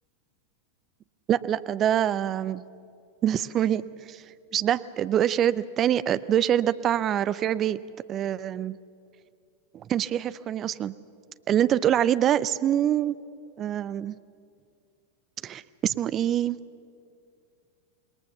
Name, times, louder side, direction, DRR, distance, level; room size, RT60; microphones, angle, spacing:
voice 1, 1.3-2.6 3.2-4.2 4.5-7.8 8.1-8.8 9.7-10.9 11.5-13.2 13.6-14.2 15.4-16.6, right 10 dB, 30° right, 15 dB, 0.6 m, -25 dB
26.5 x 20.5 x 7.0 m, 2.4 s
figure-of-eight pair, 90°, 0 cm